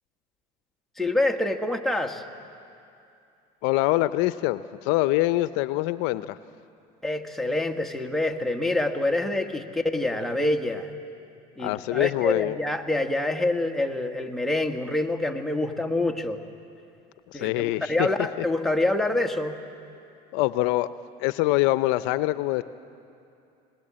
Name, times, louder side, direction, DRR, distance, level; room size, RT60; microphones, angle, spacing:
voice 1, 1.0-2.2 7.0-10.9 11.6-16.4 17.3-19.6, left 2 dB, ahead, 2 dB, 1.5 m, -26 dB
voice 2, 3.6-6.4 11.6-12.6 17.3-18.1 18.4-18.5 20.3-20.9 21.2-22.6, left 18 dB, 80° left, 15 dB, 0.6 m, -24 dB
20.5 x 20.0 x 8.7 m, 2.6 s
supercardioid pair, 110°, 19 cm